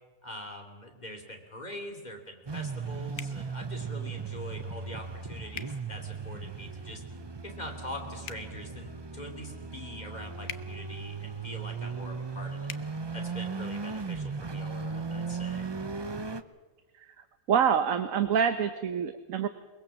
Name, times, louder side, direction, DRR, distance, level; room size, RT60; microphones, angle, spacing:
voice 1, 0.2-7.0 7.4-12.7 13.1-15.7, left 1 dB, 30° left, 3 dB, 3.1 m, -43 dB
sound 1, 2.5-16.4, right 4 dB, 30° right, 0.5 m, -37 dB
sound 2, 3.1-3.4 5.5-5.7 8.2-8.4 10.4-10.6 12.6-12.8, left 9 dB, 70° left, 1.3 m, -40 dB
voice 2, 17.5-19.5, right 8 dB, 70° right, 9 dB, 1.3 m, -26 dB
22.5 x 22.0 x 7.3 m, 1.3 s
omnidirectional pair, 1.5 m